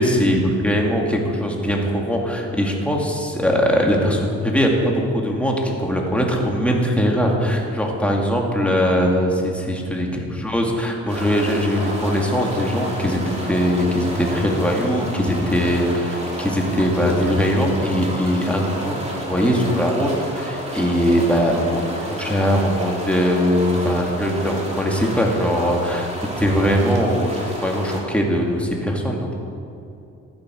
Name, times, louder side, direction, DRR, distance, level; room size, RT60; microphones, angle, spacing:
voice 1, 0.0-26.1 26.4-29.3, equal, 5° left, -1 dB, 2.4 m, -21 dB
sound 1, 11.1-28.0, equal, 20° right, 3.1 m, -31 dB
14.0 x 8.7 x 6.5 m, 2.6 s
cardioid pair, 90°, 30 cm